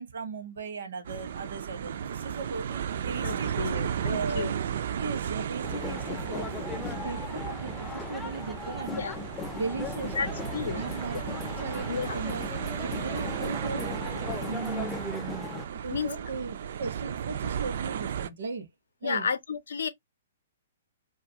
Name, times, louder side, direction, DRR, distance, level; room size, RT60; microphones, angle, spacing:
voice 1, 0.0-4.6 4.9-9.1 9.5-10.3 10.7-12.5 12.8-13.9 14.4-15.5 15.8-18.7 19.0-19.3, right 4 dB, 80° right, 0.9 m, -37 dB
sound 1, 1.0-18.3, right 8 dB, 60° right, 0.3 m, -34 dB
voice 2, 3.2-4.5 8.9-9.2 10.2-10.8 11.9-12.2 15.1-15.2 15.9-16.1 19.0-19.9, left 6 dB, 80° left, 0.5 m, -32 dB
sound 2, 5.6-15.6, left 4 dB, 10° left, 0.4 m, -38 dB
2.3 x 2.3 x 2.8 m
hypercardioid pair, 140°, 0 cm